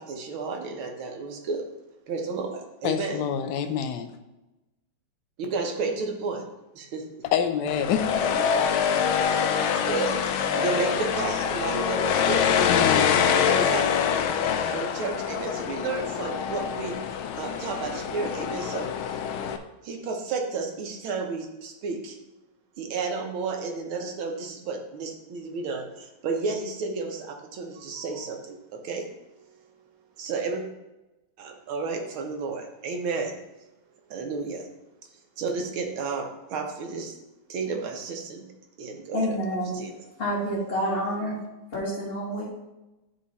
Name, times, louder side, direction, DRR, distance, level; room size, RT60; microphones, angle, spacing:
voice 1, 0.0-1.6 2.1-3.2 5.4-6.4 6.7-7.2 8.2-8.4 9.6-12.7 13.1-13.8 14.7-17.0 17.3-18.9 19.8-22.2 22.8-29.1 29.3-29.7 30.2-30.6 31.4-33.4 34.1-34.7 35.4-37.2 37.5-38.5 38.8-39.3 39.7-39.9, right 4 dB, 85° right, 3 dB, 1.8 m, -32 dB
voice 2, 2.8-4.1 7.3-8.1 12.6-13.3, left 8 dB, 70° left, 8 dB, 1.1 m, -26 dB
sound 1, 7.7-19.6, left 7 dB, 85° left, 1.4 m, -25 dB
voice 3, 39.1-39.8 40.2-41.4 41.7-42.4, equal, 35° left, -8 dB, 1.4 m, -28 dB
9.9 x 3.8 x 4.1 m, 1.0 s
omnidirectional pair, 2.2 m